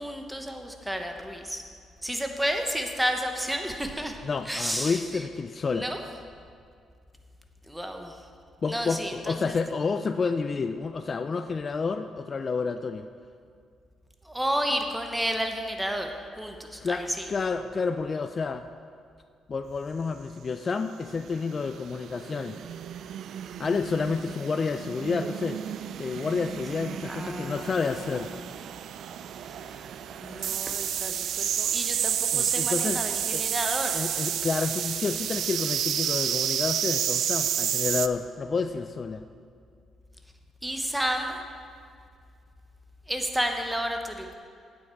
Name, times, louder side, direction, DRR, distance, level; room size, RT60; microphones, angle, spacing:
voice 1, 0.0-1.6 2.0-4.2 4.4-5.0 5.7-6.0 7.7-8.2 8.7-9.5 14.2-16.1 16.4-17.3 27.1-28.0 29.5-29.6 30.2-34.0 40.6-41.4 43.1-44.4, equal, 5° right, 4 dB, 1.0 m, -31 dB
voice 2, 4.2-5.9 8.6-13.1 16.8-18.7 19.5-22.6 23.6-25.6 26.0-28.3 32.3-33.0 33.3-33.4 33.9-39.2, left 4 dB, 40° left, 9 dB, 0.3 m, -29 dB
sound 1, 21.3-38.1, right 10 dB, 70° right, 0.3 m, -30 dB
9.6 x 8.9 x 4.6 m, 2.2 s
cardioid pair, 90°, 0 cm